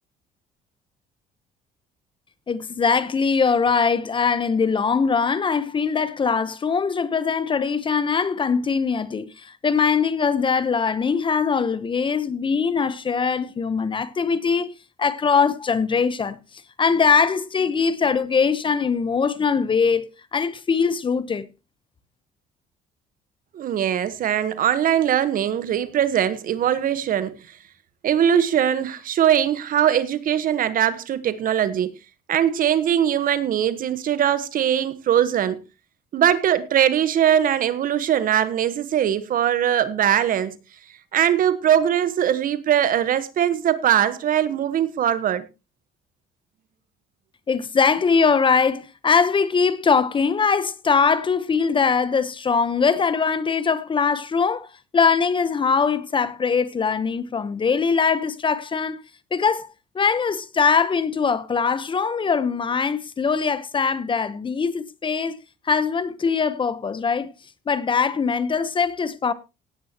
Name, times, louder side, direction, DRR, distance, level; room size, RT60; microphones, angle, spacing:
voice 1, 2.5-14.7 15.0-16.4 16.8-21.5 47.5-54.7 54.9-59.0 59.3-59.7 59.9-65.4 65.7-67.3 67.7-69.3, left 5 dB, 30° left, 1.0 m, -21 dB
voice 2, 23.5-27.4 28.0-31.9 32.3-35.6 36.1-40.6 41.1-45.4, right 10 dB, 55° right, 1.3 m, -21 dB
17.0 x 9.7 x 3.0 m
cardioid pair, 110°, 17 cm